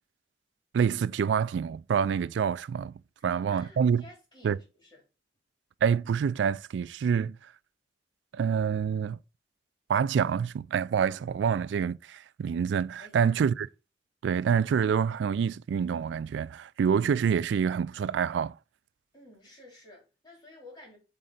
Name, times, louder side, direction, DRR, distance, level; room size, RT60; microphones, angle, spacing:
voice 1, 0.7-2.9 3.2-4.0 4.4-4.6 5.8-7.5 8.3-9.2 9.9-13.7 14.2-18.6, right 7 dB, 85° right, 0.3 m, -27 dB
voice 2, 3.2-5.0 13.0-13.4 19.1-21.0, left 2 dB, 25° left, 3.3 m, -52 dB
7.6 x 3.9 x 4.0 m
head